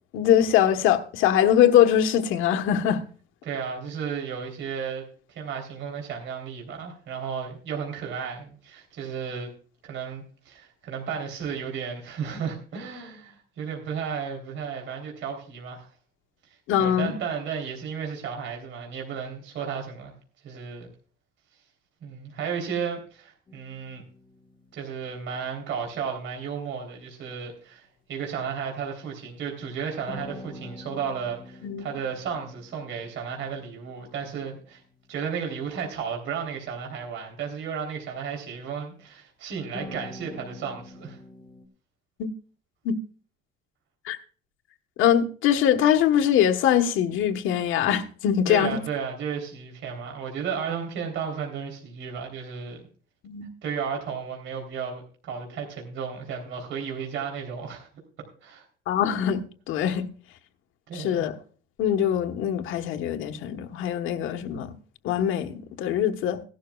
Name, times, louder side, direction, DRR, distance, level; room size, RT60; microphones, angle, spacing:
voice 1, 0.1-3.0 16.7-17.1 31.6-31.9 42.2-42.3 42.8-43.0 44.0-44.2 45.0-48.8 53.2-53.5 58.9-60.1 60.9-61.4 61.8-64.8 65.0-66.4, left 10 dB, 75° left, 1.2 m, -22 dB
voice 2, 3.4-5.0 5.3-9.5 9.8-15.9 16.8-20.1 20.4-20.9 22.0-24.0 24.7-34.8 35.1-41.2 48.5-52.8 53.6-57.9 58.4-58.7 60.9-61.3, right 6 dB, 65° right, 3.4 m, -33 dB
sound 1, 23.5-25.7 30.1-34.9 39.7-41.7, left 2 dB, 20° left, 1.2 m, -46 dB
17.0 x 12.0 x 2.3 m
cardioid pair, 135°, 21 cm